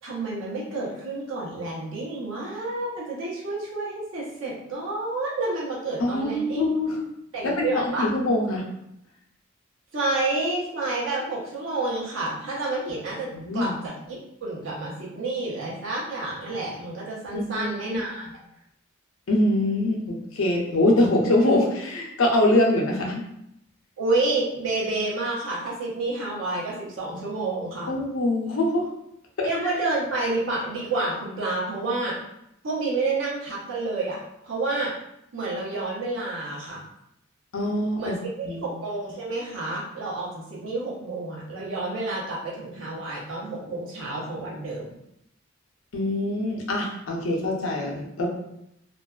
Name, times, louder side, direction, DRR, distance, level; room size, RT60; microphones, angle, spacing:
voice 1, 0.0-6.7 7.3-8.1 9.9-13.3 13.5-18.2 24.0-27.9 29.4-32.2 32.6-34.2 34.4-34.9 35.3-36.8 38.0-44.9, right 2 dB, 75° right, -5 dB, 0.8 m, -29 dB
voice 2, 6.0-7.0 7.4-7.7 8.0-8.6 13.3-13.7 17.3-18.0 19.3-23.2 27.9-28.9 29.4-29.5 37.5-38.1 38.4-38.6 45.9-48.3, left 1 dB, 90° left, 0 dB, 0.5 m, -24 dB
2.4 x 2.2 x 2.3 m, 0.79 s
head